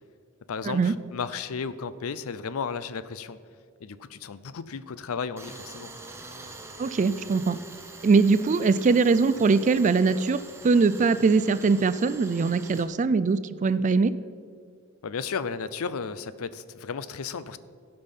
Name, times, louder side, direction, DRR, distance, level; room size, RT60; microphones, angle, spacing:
voice 1, 0.5-3.4 3.8-5.9 15.0-17.6, left 5 dB, 75° left, 15 dB, 0.5 m, -34 dB
Tools, 5.4-12.9, right 2 dB, 10° right, 0.9 m, -44 dB
voice 2, 6.8-7.6 8.0-10.4 10.6-14.1, right 4 dB, 35° right, 15 dB, 0.3 m, -22 dB
16.0 x 5.4 x 5.4 m, 2.2 s
head